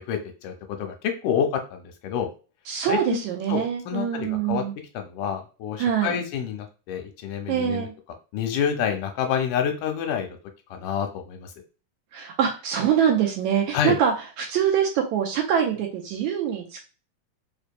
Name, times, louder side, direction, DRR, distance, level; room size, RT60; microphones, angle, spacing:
voice 1, 0.0-2.3 2.9-3.2 3.5-4.6 4.9-7.9 8.3-10.3 10.7-11.5 13.7-14.0, left 8 dB, 85° left, 5 dB, 2.1 m, -28 dB
voice 2, 2.7-4.8 5.8-6.2 7.5-7.9 12.1-16.8, right 8 dB, 75° right, 1 dB, 1.8 m, -24 dB
5.0 x 2.7 x 2.2 m, 0.32 s
omnidirectional pair, 3.7 m